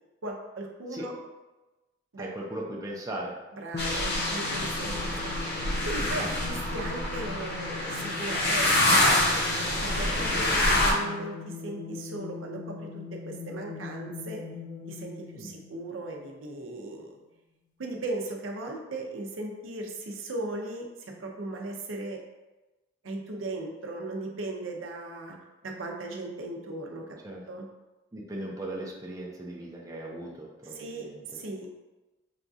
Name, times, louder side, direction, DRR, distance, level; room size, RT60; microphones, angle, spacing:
voice 1, 0.2-1.1 2.1-2.3 3.6-5.3 5.8-14.4 14.9-17.1 17.8-22.2 23.0-25.4 25.6-27.0 27.5-27.6 30.8-31.1 31.3-31.7, right 2 dB, 85° right, 0 dB, 0.6 m, -37 dB
voice 2, 2.2-3.4 4.8-5.2 6.1-6.4 15.3-15.6 27.2-27.4 28.1-31.4, right 1 dB, 20° right, -2 dB, 0.5 m, -38 dB
sound 1, 3.7-16.6, left 5 dB, 40° left, 0.4 m, -41 dB
sound 2, 3.8-10.9, left 1 dB, 55° left, 0.8 m, -26 dB
5.7 x 2.4 x 2.6 m, 1.1 s
head